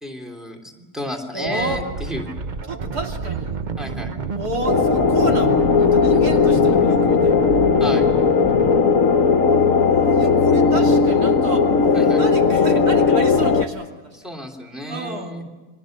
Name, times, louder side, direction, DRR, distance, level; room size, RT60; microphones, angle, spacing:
voice 1, 0.0-1.8 2.1-2.3 3.8-4.1 7.8-8.0 11.9-12.2 14.2-15.4, equal, ahead, 2 dB, 3.2 m, -31 dB
voice 2, 1.3-1.8 2.6-3.6 4.3-7.4 8.9-11.7 12.2-14.2 14.9-15.5, right 2 dB, 85° right, 1 dB, 3.2 m, -31 dB
sound 1, 1.5-8.8, right 5 dB, 40° right, 0.8 m, -29 dB
sound 2, 4.7-13.6, left 5 dB, 65° left, 1.3 m, -17 dB
30.0 x 23.0 x 6.7 m, 1.3 s
omnidirectional pair, 1.6 m